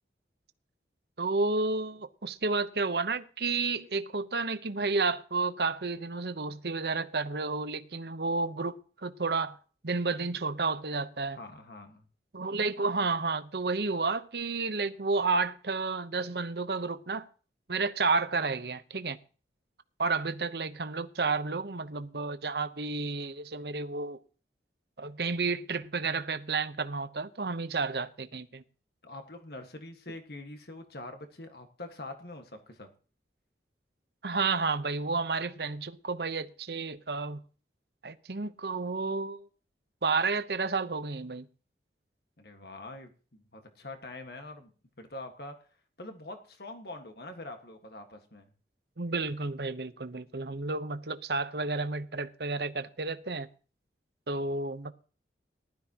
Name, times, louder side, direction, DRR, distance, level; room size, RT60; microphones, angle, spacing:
voice 1, 1.2-9.6 9.8-11.4 12.3-17.3 17.7-19.2 20.0-24.2 25.0-28.6 34.2-37.4 38.0-39.5 40.0-41.5 49.0-53.5 54.3-54.9, right 4 dB, 65° right, 0.9 m, -31 dB
voice 2, 11.3-12.0 29.0-32.9 42.4-44.7 45.0-45.5 46.0-48.5, left 2 dB, 60° left, 1.6 m, -44 dB
19.0 x 12.5 x 2.9 m
head